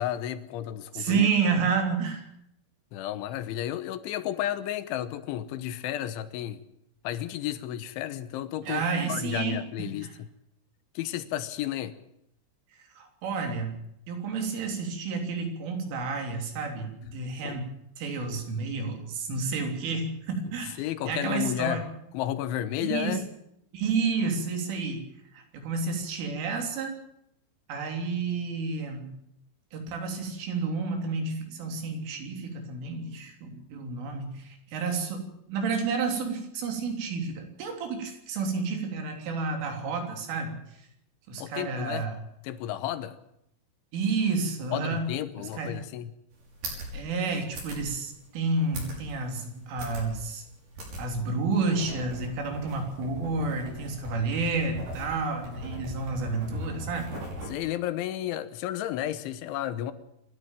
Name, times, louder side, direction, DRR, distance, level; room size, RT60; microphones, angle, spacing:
voice 1, 0.0-1.3 2.9-6.6 7.0-10.1 11.0-12.0 17.4-17.6 20.8-21.8 22.1-23.3 41.4-42.1 42.4-43.2 44.7-46.1 57.5-59.9, left 12 dB, 80° left, 12 dB, 3.3 m, -32 dB
voice 2, 0.9-2.3 8.6-9.6 10.0-10.1 13.0-13.7 14.1-17.7 18.0-20.8 21.1-21.8 22.8-23.2 23.7-25.0 25.3-27.0 27.7-29.1 29.7-40.6 41.3-42.2 43.9-45.1 45.4-45.8 46.9-50.4 51.0-57.1, right 4 dB, 80° right, 4 dB, 5.8 m, -30 dB
sound 1, 46.3-57.6, equal, 50° right, 7.6 m, -40 dB
26.5 x 12.0 x 9.0 m, 0.78 s
omnidirectional pair, 5.6 m